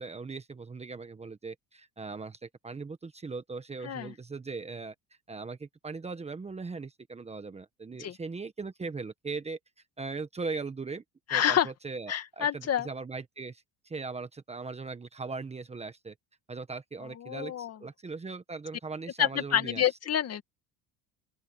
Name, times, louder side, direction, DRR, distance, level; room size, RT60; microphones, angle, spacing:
voice 1, 0.0-4.9 5.3-9.6 10.0-11.0 11.3-16.1 16.5-19.8, right 4 dB, 15° right, 1.3 m, -39 dB
voice 2, 11.3-11.7 12.1-12.9 17.1-17.8 19.2-20.4, left 10 dB, 40° left, 2.2 m, -28 dB
open air
cardioid pair, 125°, 38 cm